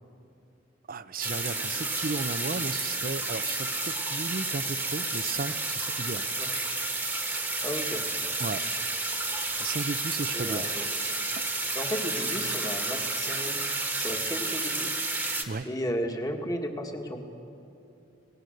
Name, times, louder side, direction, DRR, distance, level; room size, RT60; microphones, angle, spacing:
voice 1, 0.9-6.3 8.4-8.6 9.5-10.9 15.5-15.7, right 4 dB, 50° right, 14 dB, 0.6 m, -35 dB
sound 1, 1.2-15.4, right 2 dB, 10° right, 1.4 m, -31 dB
voice 2, 7.6-8.0 10.3-10.9 11.7-13.6 14.0-14.9 15.6-17.2, equal, 20° left, 4 dB, 1.7 m, -34 dB
25.5 x 18.5 x 6.5 m, 2.8 s
head